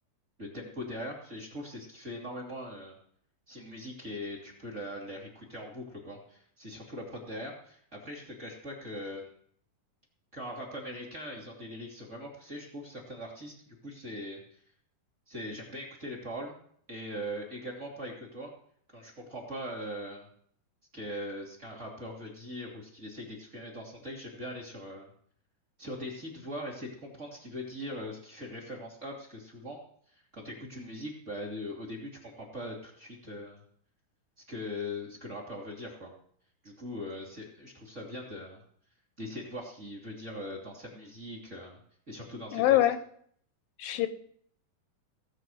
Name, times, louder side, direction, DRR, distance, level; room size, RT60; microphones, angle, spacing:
voice 1, 0.4-3.0 3.5-9.3 10.3-14.6 15.3-16.5 16.9-18.5 18.9-20.3 20.9-25.1 25.8-29.8 30.1-33.6 34.5-36.1 36.6-38.6 39.2-41.8 42.1-42.8, equal, 20° right, -2 dB, 2.7 m, -41 dB
voice 2, 42.5-43.0 43.8-44.1, left 14 dB, 85° left, 10 dB, 2.5 m, -24 dB
17.0 x 5.7 x 7.9 m, 0.63 s
omnidirectional pair, 4.2 m